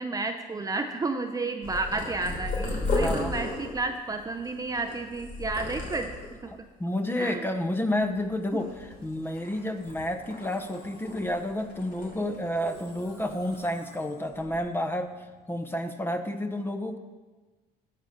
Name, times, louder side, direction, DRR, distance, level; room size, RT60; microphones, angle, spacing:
voice 1, 0.0-6.2 6.4-6.7 7.2-7.5 8.5-8.6, right 3 dB, 20° right, 6 dB, 0.5 m, -31 dB
Purr, 1.6-6.5 7.0-7.5 7.8-9.0 9.4-11.4 11.7-13.0 13.3-13.6 14.3-14.6, left 2 dB, 50° left, 3.2 m, -34 dB
voice 2, 3.0-3.3 6.8-8.7 9.0-15.1 15.5-17.0, left 1 dB, 15° left, 8 dB, 0.8 m, -30 dB
Musical instrument, 8.6-15.9, left 3 dB, 70° left, 1.8 m, -54 dB
14.0 x 5.0 x 5.7 m, 1.3 s
cardioid pair, 110°, 17 cm